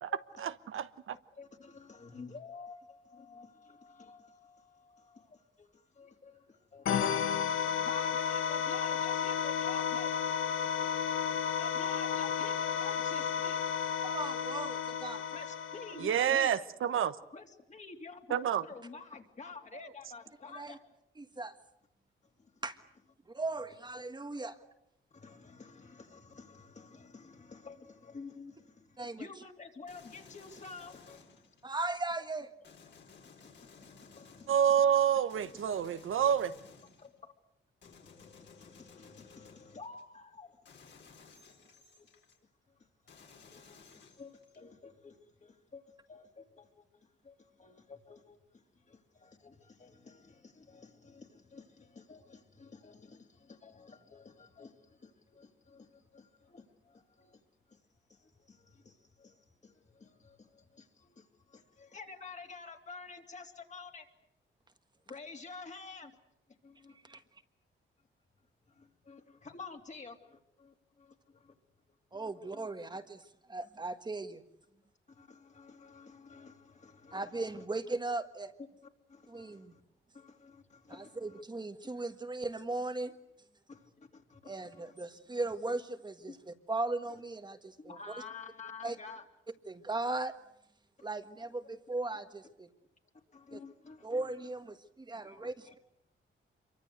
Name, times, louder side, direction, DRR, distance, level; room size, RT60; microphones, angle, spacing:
voice 1, 0.4-1.2 16.0-17.2 18.3-18.6 34.5-36.5, right 9 dB, 80° right, 1.1 m, -28 dB
voice 2, 1.4-10.2 11.6-13.6 15.3-16.7 17.3-20.8 22.4-22.5 25.1-31.4 33.2-34.9 35.4-35.7 36.1-36.3 37.0-37.1 37.8-40.6 42.0-42.1 43.5-45.8 46.1-57.4 57.7-57.8 58.1-64.0 65.1-66.2 66.6-67.2 68.7-71.5 72.1-72.7 75.1-77.3 77.6-77.7 79.1-79.8 80.1-81.4 83.7-84.9 86.3-86.4 87.8-89.2 93.3-94.1 95.2-95.7, left 4 dB, 35° left, 3.1 m, -51 dB
sound 1, 6.9-16.3, left 8 dB, 80° left, 1.6 m, -32 dB
voice 3, 14.0-15.3 20.5-20.8 21.2-21.6 22.6-22.8 23.3-24.6 29.0-29.3 31.6-32.5 66.9-67.2 72.1-74.4 77.1-78.5 79.3-79.7 80.9-83.2 84.4-88.0 88.8-89.0 89.7-90.3 91.0-92.7 93.5-93.6 94.0-95.8, right 2 dB, 20° right, 1.6 m, -38 dB
sound 2, 29.9-31.9 32.6-34.7 35.3-37.2 37.8-40.0 40.7-42.4 43.1-44.7, left 5 dB, 60° left, 4.6 m, -57 dB
27.5 x 24.0 x 8.1 m
wide cardioid pair, 140°, 21 cm